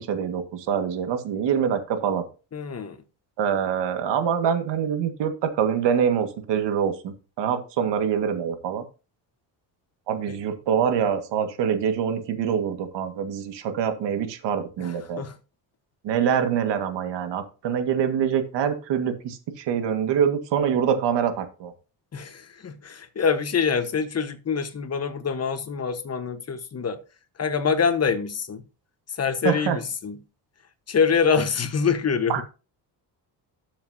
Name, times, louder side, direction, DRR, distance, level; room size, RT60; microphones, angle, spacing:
voice 1, 0.0-2.2 3.4-8.8 10.1-15.2 16.0-21.7 29.4-29.8 32.3-32.4, right 8 dB, 85° right, 1.8 m, -25 dB
voice 2, 2.5-3.0 10.3-10.4 14.8-15.4 22.1-27.0 27.4-28.6 29.2-30.2 30.9-32.3, left 6 dB, 35° left, 1.3 m, -25 dB
12.5 x 7.3 x 2.8 m
cardioid pair, 110°, 41 cm